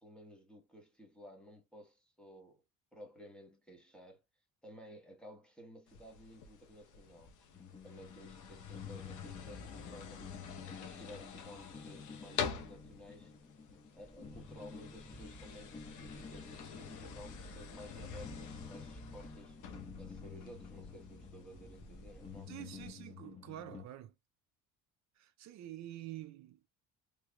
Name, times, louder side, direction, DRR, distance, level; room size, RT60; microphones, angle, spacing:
voice 1, 0.0-2.6 2.9-4.2 4.6-7.3 7.8-10.2 10.6-13.3 13.9-19.6 20.0-22.5, equal, 5° left, 1.2 m, -55 dB
sound 1, 5.9-22.9, left 6 dB, 65° left, 0.9 m, -47 dB
sound 2, 7.5-23.9, left 5 dB, 20° left, 0.8 m, -51 dB
sound 3, 13.9-22.5, right 1 dB, 40° left, 2.0 m, -56 dB
voice 2, 22.5-24.1 25.2-26.7, right 13 dB, 60° right, 0.5 m, -48 dB
3.2 x 3.2 x 2.2 m
cardioid pair, 135°, 32 cm